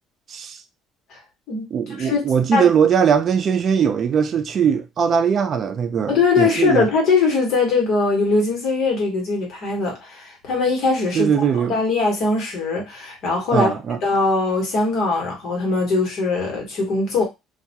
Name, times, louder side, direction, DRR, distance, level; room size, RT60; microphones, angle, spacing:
voice 1, 0.3-0.6 1.7-6.9 11.1-11.8 13.5-14.0, right 7 dB, 45° right, 0.3 m, -20 dB
voice 2, 6.1-11.3 11.7-13.7 14.0-17.2, left 3 dB, 60° left, 1.0 m, -21 dB
2.3 x 2.1 x 2.7 m
cardioid pair, 105°, 0 cm